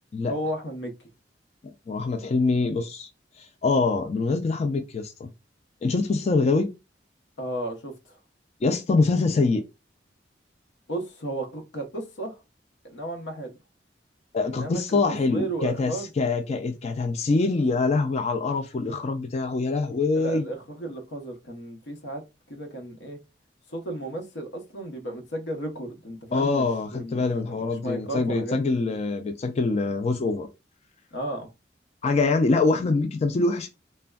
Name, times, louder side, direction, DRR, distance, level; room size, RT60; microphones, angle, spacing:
voice 1, 0.3-1.1 7.4-8.2 10.9-12.4 12.8-13.5 14.4-16.1 20.1-22.2 22.5-23.2 23.7-26.7 26.9-29.0 31.1-31.5, right 1 dB, 90° left, 0.9 m, -34 dB
voice 2, 1.9-3.1 3.4-5.3 5.8-6.7 8.6-9.6 14.3-20.5 26.3-30.5 32.0-33.7, left 3 dB, 35° left, 0.3 m, -24 dB
3.3 x 2.2 x 2.2 m
head